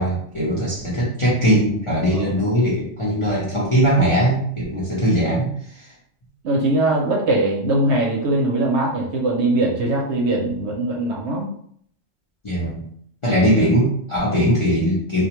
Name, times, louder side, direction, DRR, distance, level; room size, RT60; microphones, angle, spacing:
voice 1, 0.0-5.5 12.4-12.8 13.2-15.2, equal, 30° left, -6 dB, 0.6 m, -20 dB
voice 2, 2.1-2.4 6.4-11.5 13.5-13.7, right 2 dB, 65° right, -1 dB, 0.8 m, -21 dB
2.4 x 2.1 x 2.8 m, 0.63 s
omnidirectional pair, 1.4 m